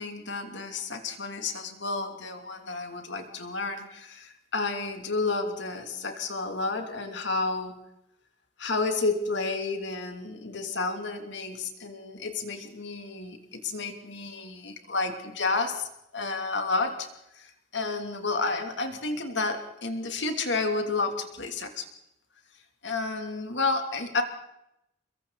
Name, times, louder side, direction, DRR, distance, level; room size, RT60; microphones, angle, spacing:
voice 1, 0.0-7.8 8.6-15.9 16.1-17.1 17.3-21.9 22.8-24.2, left 3 dB, 70° left, 5 dB, 2.9 m, -31 dB
29.5 x 22.5 x 4.1 m, 0.84 s
head